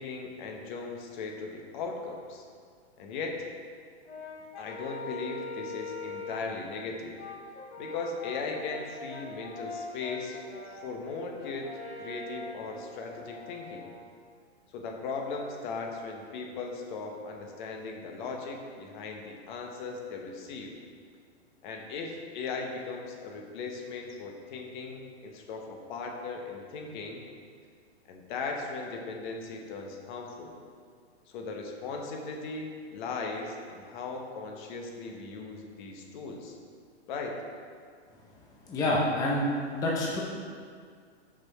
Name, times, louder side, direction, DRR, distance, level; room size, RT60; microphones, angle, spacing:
voice 1, 0.0-2.4 3.0-3.4 4.4-7.2 7.8-10.4 10.8-11.7 12.0-13.9 14.7-20.7 21.6-27.3 28.1-30.6 31.3-36.6 37.1-37.4, left 4 dB, 45° left, 2 dB, 1.0 m, -38 dB
Brass instrument, 4.1-6.6 7.2-14.1, left 3 dB, 80° left, 1.4 m, -42 dB
voice 2, 38.7-39.5 39.7-40.2, left 1 dB, 10° left, -4 dB, 0.6 m, -27 dB
6.1 x 4.5 x 4.7 m, 2.1 s
hypercardioid pair, 135°, 34 cm